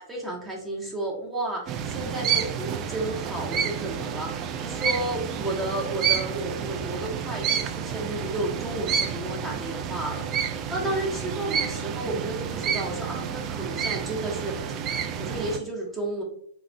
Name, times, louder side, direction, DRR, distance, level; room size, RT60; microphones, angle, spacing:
voice 1, 0.0-10.2 10.7-14.6 15.2-16.2, right 1 dB, 10° right, -2 dB, 0.8 m, -32 dB
sound 1, 1.7-15.6, right 8 dB, 35° right, 0.3 m, -30 dB
4.0 x 2.1 x 2.6 m, 0.65 s
hypercardioid pair, 125°, 0 cm